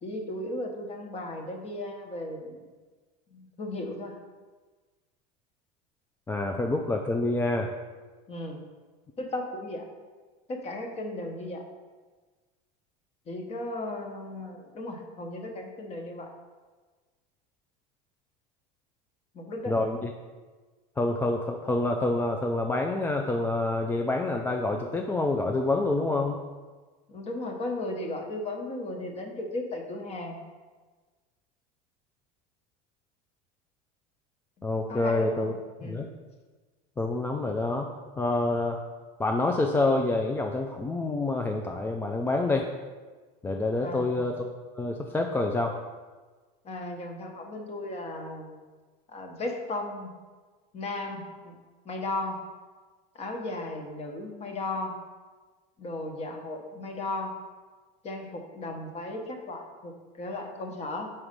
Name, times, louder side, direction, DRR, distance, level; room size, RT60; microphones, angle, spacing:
voice 1, 0.0-2.6 3.3-4.2 8.3-8.6 9.2-9.8 10.5-11.6 13.3-16.3 19.3-19.7 27.1-30.4 34.9-35.5 35.8-36.1 43.8-44.3 46.6-48.6 49.1-50.1 50.7-51.5 51.8-52.4 53.1-55.0 55.8-57.3 58.0-61.1, left 2 dB, 35° left, 3 dB, 1.0 m, -35 dB
voice 2, 6.3-7.7 19.7-20.1 21.0-26.4 34.6-35.5 35.8-36.1 37.0-37.9 38.2-38.8 39.2-42.7 43.4-44.5 44.8-45.7, left 2 dB, 10° left, 2 dB, 0.3 m, -27 dB
4.6 x 4.3 x 5.1 m, 1.4 s
supercardioid pair, 115°, 20 cm